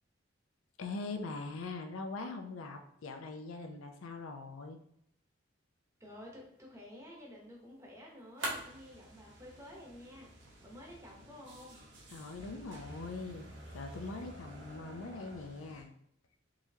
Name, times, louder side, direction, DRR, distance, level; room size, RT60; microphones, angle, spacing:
voice 1, 0.8-4.8 12.1-15.9, left 3 dB, 90° left, 5 dB, 0.5 m, -42 dB
voice 2, 6.0-11.8, left 1 dB, 15° right, -2 dB, 0.8 m, -51 dB
sound 1, 6.0-12.0, right 1 dB, 80° right, 1.2 m, -47 dB
sound 2, 8.4-15.8, right 1 dB, 65° right, 0.8 m, -52 dB
3.9 x 3.0 x 2.7 m, 0.73 s
head